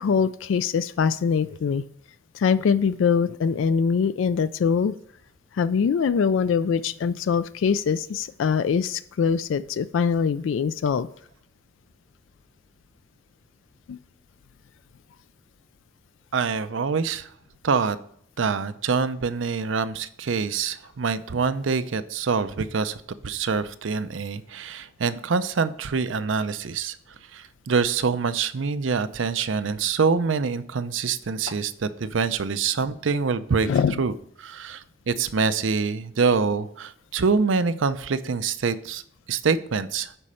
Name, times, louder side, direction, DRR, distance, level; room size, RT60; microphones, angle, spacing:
voice 1, 0.0-1.8 2.3-4.9 5.5-11.1 13.9-14.0 33.7-34.0, left 6 dB, 75° left, 14 dB, 0.3 m, -23 dB
voice 2, 16.3-17.3 17.6-18.0 18.4-27.0 27.3-33.7 34.0-34.1 34.4-39.0 39.3-40.1, right 5 dB, 80° right, 12 dB, 0.6 m, -25 dB
9.9 x 4.3 x 5.6 m, 0.66 s
head